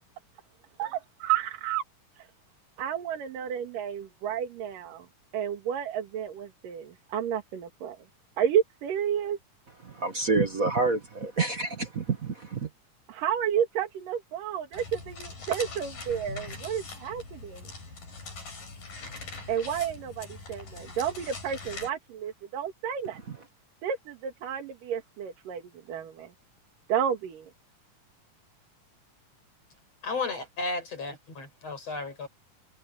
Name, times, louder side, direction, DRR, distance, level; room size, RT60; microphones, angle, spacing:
voice 1, 0.8-1.8 2.2-2.3 2.8-5.1 5.3-8.0 8.4-9.4 13.1-17.6 19.5-23.2 23.8-26.3 26.9-27.4, right 9 dB, 90° right, 3.6 m, -31 dB
voice 2, 10.0-12.6, right 3 dB, 45° right, 1.1 m, -27 dB
sound 1, 14.7-21.9, left 3 dB, 90° left, 8.8 m, -42 dB
voice 3, 30.0-32.3, left 3 dB, 50° left, 8.3 m, -33 dB
omnidirectional pair, 3.7 m